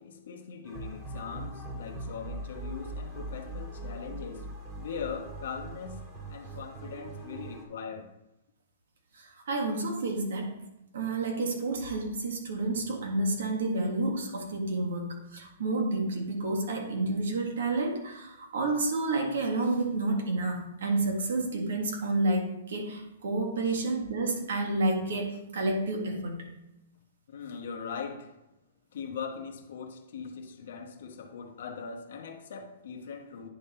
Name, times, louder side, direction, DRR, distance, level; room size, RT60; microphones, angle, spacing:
voice 1, 0.0-4.5 4.7-8.1 23.7-23.8 27.3-28.3 28.9-33.5, left 6 dB, 70° left, 1.0 m, -40 dB
sound 1, 0.6-7.6, right 2 dB, 25° right, 1.7 m, -41 dB
voice 2, 9.1-10.5 10.9-26.5, right 2 dB, 80° right, 1.7 m, -30 dB
9.9 x 3.5 x 4.3 m
hypercardioid pair, 145°, 0 cm